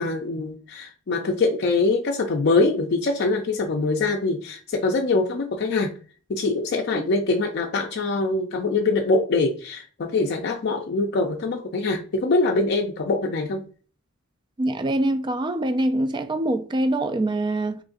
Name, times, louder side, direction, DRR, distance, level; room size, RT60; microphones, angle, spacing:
voice 1, 0.0-5.9 6.3-13.6, left 3 dB, 55° left, 0.4 m, -23 dB
voice 2, 14.6-17.8, right 1 dB, 25° right, 0.3 m, -24 dB
3.1 x 2.5 x 3.7 m
head